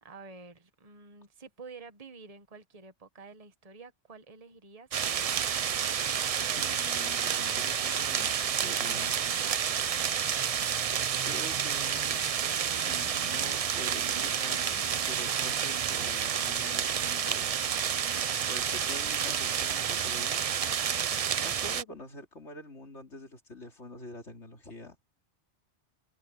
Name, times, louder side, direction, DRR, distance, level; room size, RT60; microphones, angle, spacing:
voice 1, 0.0-5.5, right 4 dB, 30° right, 1.5 m, -50 dB
sound 1, 4.9-21.8, right 8 dB, 50° right, 0.4 m, -30 dB
voice 2, 6.6-9.2 11.2-12.2 12.8-17.8 18.5-20.4 21.4-25.0, left 2 dB, 75° left, 3.5 m, -45 dB
omnidirectional pair, 1.2 m